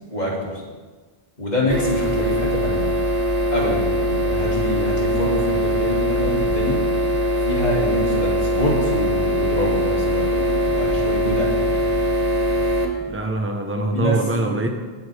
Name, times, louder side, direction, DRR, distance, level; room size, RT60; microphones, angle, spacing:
voice 1, 0.1-0.6 1.4-2.9 3.5-6.8 7.4-11.7 13.9-14.2, equal, 40° left, -4 dB, 2.8 m, -25 dB
sound 1, 1.7-12.9, equal, 35° right, 1.4 m, -21 dB
voice 2, 13.1-14.7, right 2 dB, 10° right, 3 dB, 1.1 m, -23 dB
18.5 x 8.3 x 3.5 m, 1.4 s
omnidirectional pair, 1.1 m